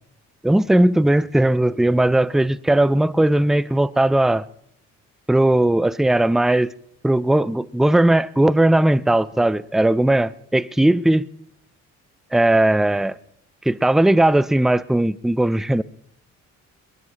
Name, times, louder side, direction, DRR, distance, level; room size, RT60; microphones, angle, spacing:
voice 1, 0.4-4.5 5.3-6.7 7.0-11.2 12.3-13.1 13.7-15.8, right 1 dB, ahead, 0.5 m, -18 dB
22.5 x 20.0 x 2.9 m
supercardioid pair, 55°, 34 cm